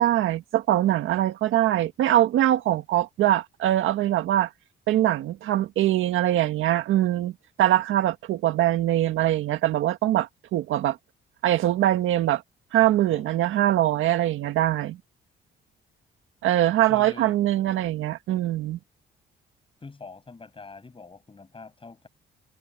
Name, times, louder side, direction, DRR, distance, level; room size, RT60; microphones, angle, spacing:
voice 1, 0.0-4.5 4.9-11.0 11.4-12.4 12.7-15.0 16.4-18.8, right 13 dB, 85° right, 1.7 m, -23 dB
voice 2, 16.9-17.4 19.8-22.1, left 4 dB, 25° left, 6.6 m, -44 dB
cardioid pair, 90°, 20 cm